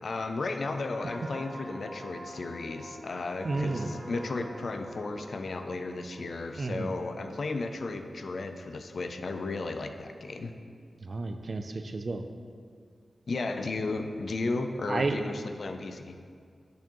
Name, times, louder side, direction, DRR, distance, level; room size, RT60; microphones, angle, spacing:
voice 1, 0.0-10.5 13.3-16.2, left 3 dB, 60° left, 7 dB, 0.3 m, -34 dB
sound 1, 0.6-8.1 8.5-8.8, equal, 10° left, 1.3 m, -46 dB
voice 2, 3.4-4.0 6.6-7.0 11.0-12.2 14.9-15.2, right 3 dB, 45° right, 7 dB, 0.3 m, -31 dB
8.2 x 4.4 x 3.0 m, 2.1 s
wide cardioid pair, 145°, 0 cm